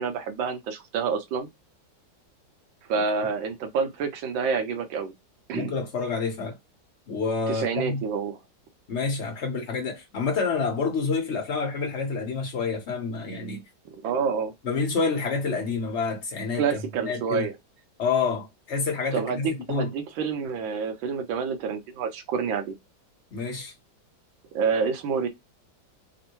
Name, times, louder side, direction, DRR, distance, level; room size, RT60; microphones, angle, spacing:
voice 1, 0.0-1.5 2.9-5.1 5.5-5.7 7.5-8.4 13.8-14.5 16.6-17.5 19.1-22.7 24.5-25.3, right 6 dB, 80° right, 1.5 m, -28 dB
voice 2, 5.5-6.6 7.1-8.0 8.9-13.6 14.6-16.6 17.0-17.5 18.0-19.9 23.3-23.7, left 4 dB, 45° left, 0.9 m, -28 dB
3.6 x 2.1 x 2.9 m
omnidirectional pair, 2.1 m